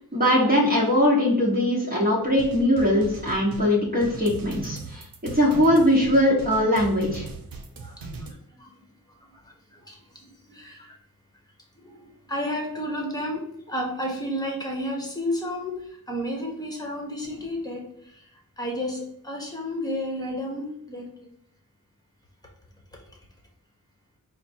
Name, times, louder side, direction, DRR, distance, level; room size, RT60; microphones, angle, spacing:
voice 1, 0.1-5.0 5.3-7.2, left 1 dB, 25° right, -5 dB, 1.2 m, -21 dB
sound 1, 2.2-8.3, right 3 dB, 80° right, 0.7 m, -39 dB
voice 2, 7.8-8.7 9.4-10.9 11.8-18.2 18.6-21.1, left 1 dB, 10° left, 0 dB, 1.1 m, -32 dB
4.3 x 2.2 x 4.4 m, 0.72 s
wide cardioid pair, 70°, 35 cm